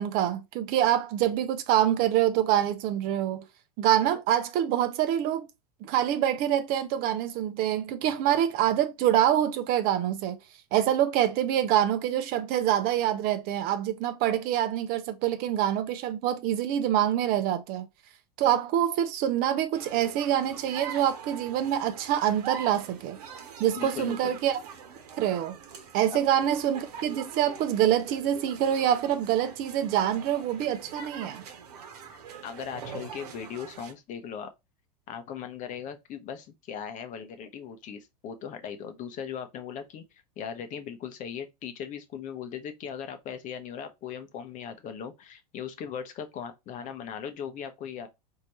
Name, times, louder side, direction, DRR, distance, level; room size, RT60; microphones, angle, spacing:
voice 1, 0.0-3.4 3.8-5.5 5.8-10.4 10.7-17.9 18.4-23.2 23.6-24.6 25.2-25.6 25.9-31.4, right 11 dB, 45° right, 0.7 m, -25 dB
sound 1, 19.7-33.9, right 7 dB, 70° right, 1.1 m, -43 dB
voice 2, 23.8-24.4 26.1-26.2 32.1-34.5 35.1-40.0 40.4-48.1, left 8 dB, 40° left, 0.9 m, -38 dB
4.2 x 2.8 x 3.0 m
hypercardioid pair, 95°, 21 cm